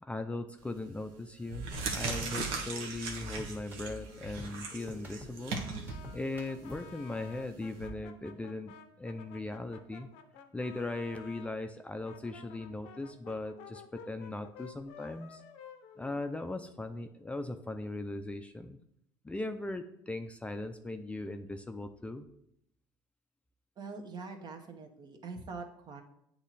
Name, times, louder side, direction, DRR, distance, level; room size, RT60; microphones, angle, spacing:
voice 1, 0.0-1.7 1.9-5.6 6.1-10.1 10.5-15.4 16.0-18.8 19.2-22.3, left 2 dB, 10° left, 7 dB, 0.4 m, -39 dB
sound 1, 0.6-0.9 1.4-7.9, right 4 dB, 75° right, 1.1 m, -39 dB
sound 2, 1.7-7.1, left 1 dB, 20° right, 1.5 m, -49 dB
Brass instrument, 5.9-11.5 12.0-16.8, left 7 dB, 80° left, 0.6 m, -53 dB
voice 2, 23.8-26.0, right 4 dB, 45° right, 5 dB, 1.0 m, -44 dB
8.2 x 3.0 x 4.1 m, 0.74 s
supercardioid pair, 85°, 10 cm